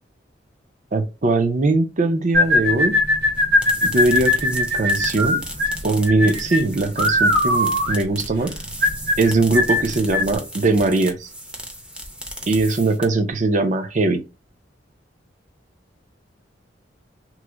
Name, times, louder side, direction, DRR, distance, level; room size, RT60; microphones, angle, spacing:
voice 1, 0.9-2.9 3.8-5.4 5.8-8.5 9.2-11.3 12.5-14.2, right 2 dB, 45° right, 0.5 m, -20 dB
sound 1, 2.3-10.4, left 2 dB, 60° right, 1.0 m, -20 dB
sound 2, 3.4-13.3, equal, 5° right, 0.6 m, -36 dB
3.1 x 2.1 x 3.5 m
head